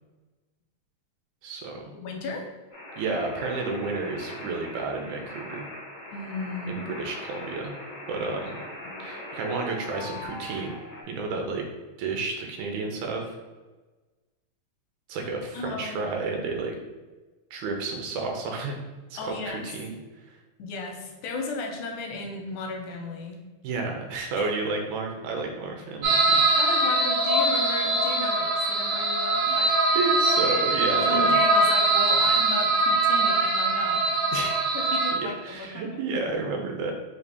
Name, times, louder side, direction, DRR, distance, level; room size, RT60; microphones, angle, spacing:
voice 1, 1.4-1.9 3.0-5.7 6.7-7.7 8.1-8.6 9.0-10.8 11.1-11.7 12.0-13.4 15.1-16.8 17.5-18.8 19.1-19.9 23.6-26.4 29.5-31.4 34.3-34.8 35.1-36.9, right 3 dB, 85° right, 2 dB, 2.0 m, -31 dB
voice 2, 1.9-2.5 6.1-6.8 8.9-9.0 15.5-16.1 19.1-19.7 20.6-23.4 24.4-24.5 26.6-29.6 30.9-34.2 34.7-36.0, left 3 dB, 90° left, 2 dB, 2.1 m, -35 dB
sound 1, 2.7-11.0, left 1 dB, 60° left, 0.7 m, -40 dB
sound 2, 26.0-35.1, right 2 dB, 70° right, 1.8 m, -22 dB
5.0 x 2.6 x 3.4 m, 1.2 s
omnidirectional pair, 3.3 m